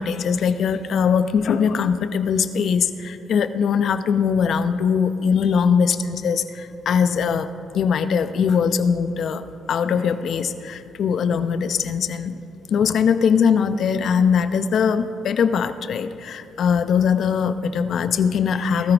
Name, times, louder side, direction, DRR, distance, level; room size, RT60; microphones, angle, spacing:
voice 1, 0.0-7.5 7.7-9.4 9.7-12.4 12.7-18.9, left 6 dB, 65° left, 10 dB, 0.8 m, -21 dB
19.5 x 13.5 x 5.1 m, 2.9 s
cardioid pair, 90°, 0 cm